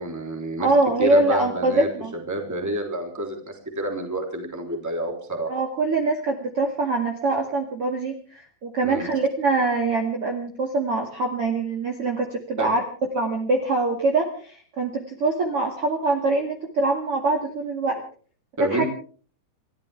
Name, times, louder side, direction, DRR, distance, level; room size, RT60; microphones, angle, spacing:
voice 1, 0.0-0.7 1.0-1.9 2.3-5.5 8.8-9.1 12.6-12.7 18.6-18.8, right 1 dB, 5° right, 3 dB, 2.6 m, -29 dB
voice 2, 0.6-2.1 5.5-12.8 13.1-18.0 18.7-18.8, right 2 dB, 40° right, 1 dB, 2.4 m, -24 dB
29.5 x 14.0 x 3.5 m, 0.42 s
omnidirectional pair, 5.1 m